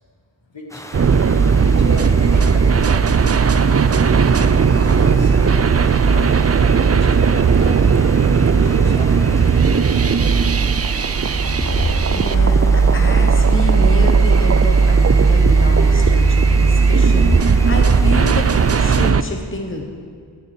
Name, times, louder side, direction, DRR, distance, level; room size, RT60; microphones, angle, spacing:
voice 1, 0.5-0.8 1.6-3.8 4.3-7.8 8.6-10.8, left 1 dB, 75° left, 0 dB, 2.1 m, -34 dB
sound 1, 0.7-19.1, equal, 5° left, 0.9 m, -36 dB
sound 2, 0.9-19.2, right 5 dB, 35° right, 0.4 m, -15 dB
voice 2, 11.5-20.0, left 2 dB, 25° left, 2 dB, 1.1 m, -26 dB
10.0 x 7.1 x 9.2 m, 2.1 s
wide cardioid pair, 60°, 45 cm